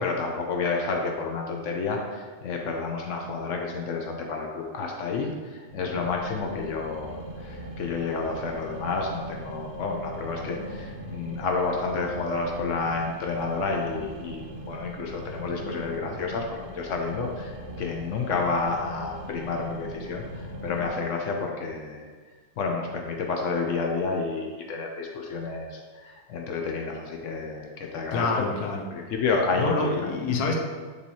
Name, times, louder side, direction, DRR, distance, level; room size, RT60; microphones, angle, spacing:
voice 1, 0.0-22.0 22.6-28.3 28.9-29.9, left 4 dB, 70° left, 1 dB, 0.8 m, -30 dB
sound 1, 5.7-20.9, equal, 50° right, 0.8 m, -40 dB
voice 2, 28.1-28.9 29.6-30.5, left 3 dB, 90° left, 2 dB, 1.1 m, -26 dB
5.2 x 3.2 x 2.8 m, 1.5 s
omnidirectional pair, 1.6 m